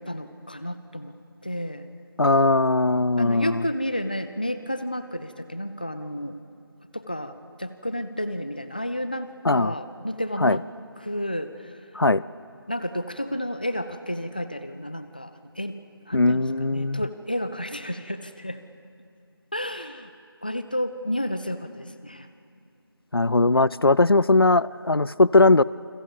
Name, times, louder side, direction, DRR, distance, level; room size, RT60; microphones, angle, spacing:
voice 1, 0.1-1.2 1.4-1.9 3.2-6.4 6.9-10.6 11.0-11.8 12.7-15.3 15.6-18.6 19.5-20.1 20.4-22.3, equal, 20° left, 11 dB, 0.6 m, -31 dB
voice 2, 2.2-3.6 9.4-9.7 10.4-10.6 11.9-12.2 16.1-17.0 23.1-25.6, left 2 dB, 70° left, 20 dB, 0.5 m, -19 dB
29.0 x 22.0 x 7.1 m, 2.5 s
figure-of-eight pair, 170°, 13 cm